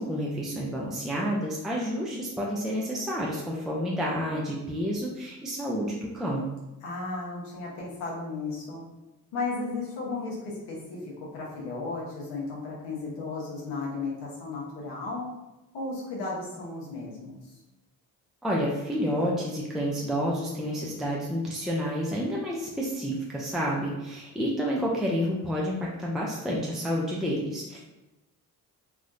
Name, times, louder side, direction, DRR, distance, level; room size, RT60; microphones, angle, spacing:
voice 1, 0.0-6.5 18.4-27.8, equal, ahead, -4 dB, 0.5 m, -29 dB
voice 2, 6.8-8.8 9.3-15.2 15.7-17.6, left 3 dB, 90° left, -5 dB, 1.0 m, -34 dB
3.5 x 2.3 x 2.6 m, 1.0 s
supercardioid pair, 65°, 41 cm